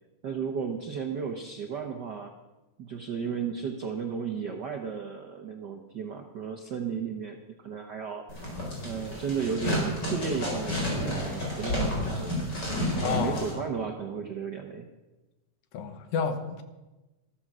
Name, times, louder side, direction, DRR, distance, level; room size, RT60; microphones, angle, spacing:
voice 1, 0.2-2.3 2.8-8.5 8.8-12.3 13.0-14.9, right 6 dB, 70° right, 4 dB, 1.0 m, -34 dB
sound 1, 8.3-13.5, left 1 dB, 35° left, 4.7 m, -30 dB
voice 2, 13.0-13.6 15.7-16.6, left 6 dB, 85° left, 9 dB, 2.6 m, -31 dB
14.0 x 13.5 x 6.2 m, 1.1 s
omnidirectional pair, 3.4 m